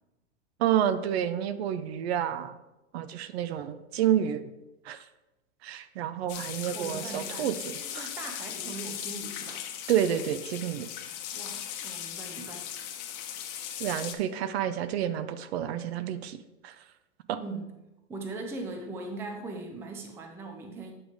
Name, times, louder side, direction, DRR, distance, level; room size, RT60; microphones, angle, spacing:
voice 1, 0.6-2.5 2.9-4.4 4.8-5.0 5.6-8.1 9.9-10.9 13.8-16.4 16.6-16.8 17.3-17.4, right 10 dB, 60° right, 12 dB, 0.6 m, -29 dB
sound 1, 6.3-14.1, left 10 dB, 45° left, 1.0 m, -38 dB
voice 2, 6.4-9.7 11.3-12.6 17.4-17.7 18.1-20.9, right 3 dB, 5° right, 4 dB, 0.4 m, -40 dB
8.5 x 3.3 x 5.0 m, 1.0 s
hypercardioid pair, 135°, 37 cm